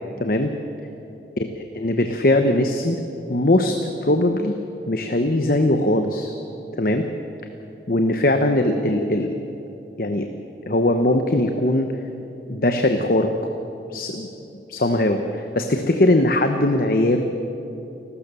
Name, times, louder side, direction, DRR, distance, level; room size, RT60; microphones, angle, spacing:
voice 1, 0.2-0.5 1.4-3.0 3.3-4.6 4.9-6.3 6.8-7.1 7.9-9.4 10.0-10.3 10.7-11.9 12.5-13.3 13.9-14.3 14.7-17.2, left 1 dB, 55° left, 6 dB, 0.9 m, -20 dB
29.0 x 13.0 x 6.8 m, 3.0 s
head